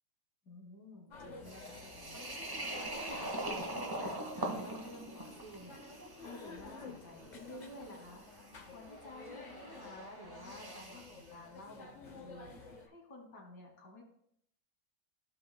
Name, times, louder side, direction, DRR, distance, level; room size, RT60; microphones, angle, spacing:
voice 1, 0.5-14.0, left 1 dB, 75° left, 0 dB, 2.5 m, -51 dB
sound 1, 1.1-12.9, left 3 dB, 45° left, 0.5 m, -52 dB
sound 2, 1.4-11.2, right 1 dB, 15° right, 0.8 m, -43 dB
15.5 x 5.3 x 2.2 m, 0.70 s
omnidirectional pair, 1.8 m